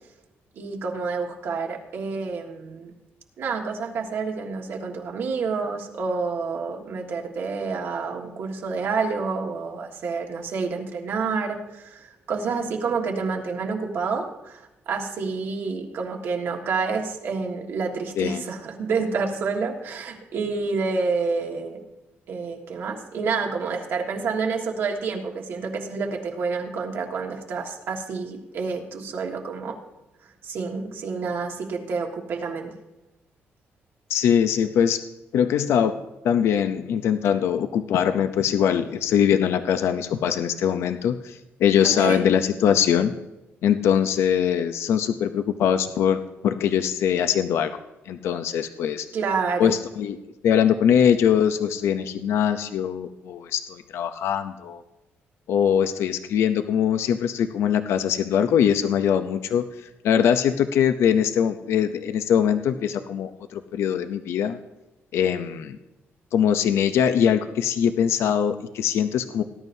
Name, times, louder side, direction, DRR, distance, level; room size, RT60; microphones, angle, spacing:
voice 1, 0.5-2.9 3.4-21.8 22.3-29.8 30.4-32.7 41.8-42.2 49.1-49.7, right 4 dB, 60° right, 2 dB, 1.7 m, -28 dB
voice 2, 34.1-35.0 35.3-36.0 36.2-43.1 43.6-47.7 48.1-49.1 49.6-50.2 50.4-54.8 55.5-64.6 65.1-65.8 66.3-69.4, left 8 dB, 75° left, 9 dB, 0.6 m, -22 dB
18.5 x 11.0 x 2.7 m, 1.0 s
cardioid pair, 160°, 4 cm